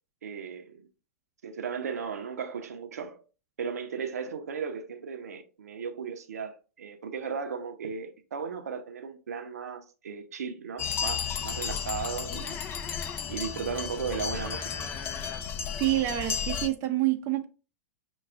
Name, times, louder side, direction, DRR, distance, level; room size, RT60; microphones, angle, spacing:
voice 1, 0.2-0.9 1.4-3.2 3.6-12.6 13.3-14.9, right 6 dB, 75° right, 0.6 m, -36 dB
sound 1, 10.8-16.7, left 7 dB, 25° left, 0.5 m, -33 dB
voice 2, 15.7-17.5, right 15 dB, 35° right, 0.6 m, -27 dB
6.0 x 2.3 x 2.3 m
hypercardioid pair, 105°, 8 cm